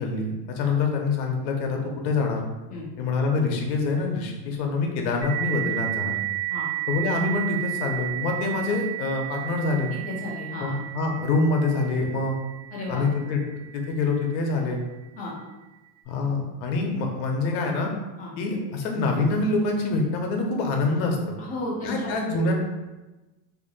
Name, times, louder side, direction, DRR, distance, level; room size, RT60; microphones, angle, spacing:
voice 1, 0.0-2.5 3.0-6.2 6.9-9.9 10.6-12.3 12.9-13.4 13.7-14.8 16.1-17.9 18.4-21.4 21.8-22.5, left 3 dB, 80° left, 2 dB, 0.9 m, -25 dB
sound 1, 5.2-14.5, right 17 dB, 40° right, 1.1 m, -33 dB
voice 2, 9.9-10.8 12.7-13.1 15.2-15.3 18.2-18.3 21.4-22.5, left 1 dB, 20° left, -4 dB, 0.4 m, -33 dB
2.8 x 2.7 x 3.9 m, 1.1 s
cardioid pair, 170°, 50 cm